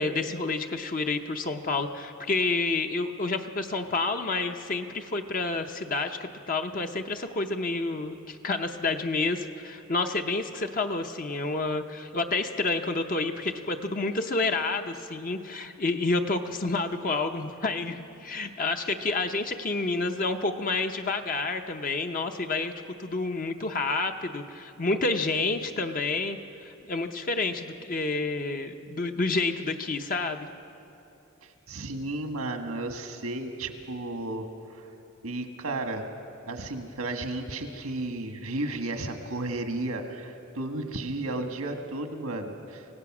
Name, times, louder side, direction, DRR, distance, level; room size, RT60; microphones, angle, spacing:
voice 1, 0.0-22.7 23.0-30.5, left 3 dB, 40° left, 5 dB, 0.8 m, -29 dB
voice 2, 31.4-34.9 35.2-36.1 36.4-42.8, right 2 dB, 85° right, 5 dB, 1.6 m, -33 dB
26.0 x 17.0 x 6.1 m, 2.8 s
head